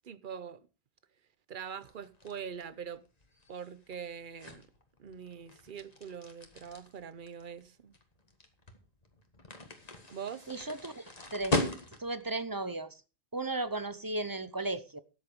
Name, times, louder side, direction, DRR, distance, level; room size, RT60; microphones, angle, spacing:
voice 1, 0.0-0.6 1.5-3.0 3.5-4.7 5.0-7.9 10.1-10.5, right 7 dB, 55° right, 0.9 m, -43 dB
sound 1, 1.9-12.3, left 2 dB, 40° left, 1.8 m, -39 dB
voice 2, 10.5-11.0 11.3-11.6 12.0-13.0 13.3-15.0, right 2 dB, 25° right, 0.7 m, -35 dB
13.0 x 8.3 x 5.2 m
omnidirectional pair, 1.1 m